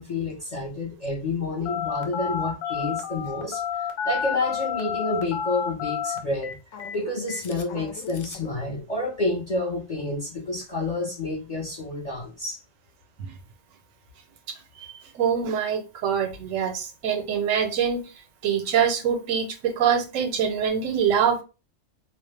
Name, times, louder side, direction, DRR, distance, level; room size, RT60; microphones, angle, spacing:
voice 1, 0.0-3.6 4.0-6.6 6.9-12.6, left 2 dB, 45° left, 0.6 m, -29 dB
Telephone, 1.7-8.5, left 7 dB, 80° left, 0.9 m, -31 dB
voice 2, 14.8-18.0 18.4-21.4, right 7 dB, 85° right, 1.0 m, -24 dB
2.4 x 2.0 x 3.1 m
omnidirectional pair, 1.3 m